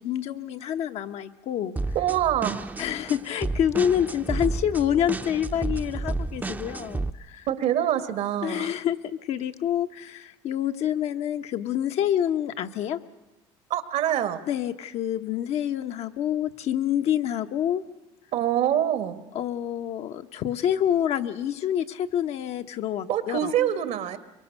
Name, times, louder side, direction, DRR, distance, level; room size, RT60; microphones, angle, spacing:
voice 1, 0.0-1.7 2.8-7.5 8.4-13.0 14.5-17.8 19.3-23.5, left 10 dB, 60° left, 7 dB, 1.2 m, -27 dB
sound 1, 1.8-7.1, right 2 dB, 15° right, 0.7 m, -31 dB
voice 2, 2.0-2.7 7.5-8.7 13.7-14.4 18.3-19.2 23.1-24.2, right 11 dB, 70° right, 10 dB, 1.8 m, -25 dB
24.5 x 22.5 x 6.6 m, 1.0 s
supercardioid pair, 95°, 12 cm